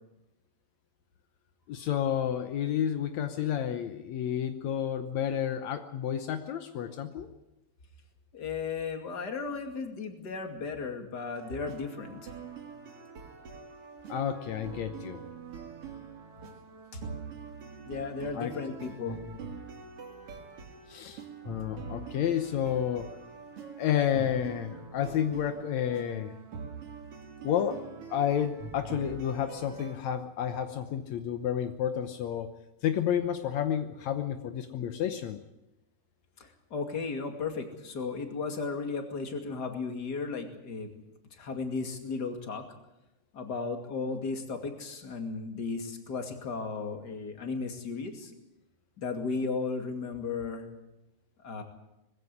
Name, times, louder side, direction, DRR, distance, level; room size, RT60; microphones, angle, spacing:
voice 1, 1.7-7.3 14.1-15.2 18.3-18.5 20.9-23.1 23.8-26.3 27.4-27.8 28.1-32.5 32.8-35.4, left 9 dB, 80° left, 8 dB, 1.6 m, -30 dB
voice 2, 8.3-12.3 16.9-17.0 17.8-19.2 36.4-40.9 41.3-42.6 43.3-48.3 49.0-50.7 51.4-51.6, left 4 dB, 30° left, 5 dB, 2.3 m, -35 dB
It's time for an adventure, 11.3-30.0, right 5 dB, 45° right, 2.3 m, -44 dB
20.5 x 16.0 x 9.8 m, 0.94 s
omnidirectional pair, 4.6 m